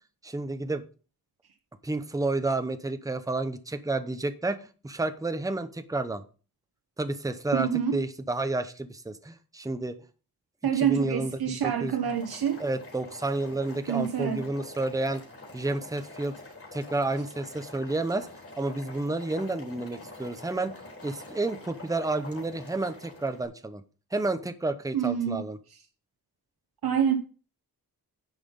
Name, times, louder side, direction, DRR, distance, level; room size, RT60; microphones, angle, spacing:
voice 1, 0.2-0.8 1.8-6.2 7.0-9.9 10.7-12.0 12.6-15.2 15.5-16.4 16.7-18.3 18.6-20.7 21.0-23.8 24.1-25.6, right 2 dB, 10° right, 0.7 m, -30 dB
voice 2, 7.5-8.0 10.6-12.6 13.9-14.4 24.9-25.4 26.8-27.2, right 8 dB, 80° right, 1.0 m, -26 dB
Boiling, 11.9-23.5, left 2 dB, 35° left, 3.8 m, -46 dB
10.5 x 5.7 x 5.3 m
wide cardioid pair, 155°, 37 cm